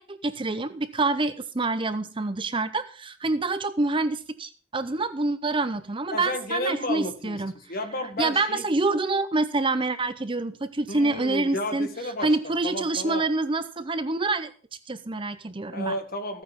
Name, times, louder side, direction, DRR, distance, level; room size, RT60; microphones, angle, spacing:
voice 1, 0.0-7.5 8.2-11.9 12.2-14.5 14.9-15.9, right 3 dB, 25° right, 12 dB, 0.6 m, -26 dB
voice 2, 6.1-8.6 10.9-13.2 15.7-16.4, left 1 dB, 45° left, 7 dB, 1.9 m, -32 dB
15.0 x 9.0 x 5.2 m, 0.41 s
head